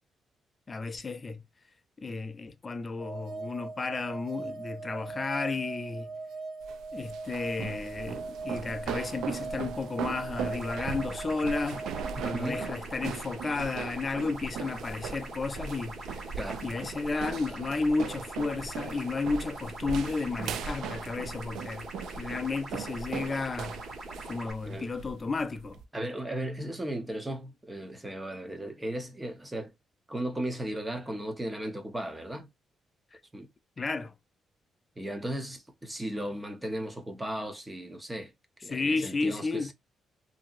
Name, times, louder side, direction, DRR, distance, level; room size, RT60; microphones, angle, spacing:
voice 1, 0.7-1.4 2.0-6.1 6.9-11.8 12.2-16.4 16.6-23.8 24.2-25.8 33.8-34.1 38.7-39.7, left 3 dB, 25° left, 0.4 m, -33 dB
sound 1, 3.0-12.7, right 3 dB, 70° right, 1.4 m, -40 dB
sound 2, 6.6-25.8, right 7 dB, 90° right, 0.3 m, -39 dB
sound 3, 10.5-24.5, right 2 dB, 35° right, 1.4 m, -43 dB
voice 2, 12.2-12.7 16.4-16.6 24.7-24.9 25.9-29.7 30.1-32.5 33.3-33.5 35.0-38.3 38.6-39.7, right 1 dB, 10° right, 0.7 m, -36 dB
2.7 x 2.7 x 2.4 m
cardioid pair, 150°, 0 cm